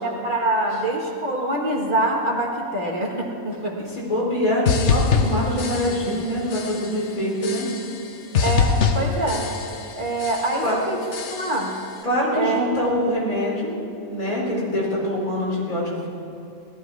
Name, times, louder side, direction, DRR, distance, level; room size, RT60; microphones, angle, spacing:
voice 1, 0.0-3.8 8.4-9.5 10.0-11.0 11.3-11.7 12.3-12.6, right 1 dB, 35° right, -2 dB, 1.8 m, -25 dB
voice 2, 3.9-7.7 10.6-10.8 12.0-13.8 14.1-16.1, left 1 dB, 75° left, -5 dB, 4.6 m, -24 dB
sound 1, 4.7-6.2 6.5-7.0 7.4-8.1 8.3-9.9 10.2-10.7 11.1-11.8, left 5 dB, 55° left, 1.2 m, -24 dB
18.0 x 13.0 x 4.8 m, 2.9 s
omnidirectional pair, 1.5 m